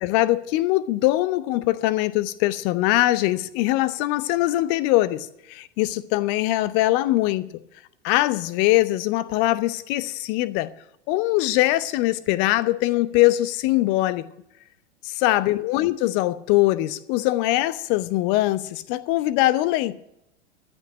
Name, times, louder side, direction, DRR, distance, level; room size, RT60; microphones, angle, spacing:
voice 1, 0.0-7.5 8.0-10.7 11.1-14.2 15.0-20.1, left 17 dB, 30° left, 0.7 m, -22 dB
13.5 x 6.2 x 8.8 m
figure-of-eight pair, 95°, 34 cm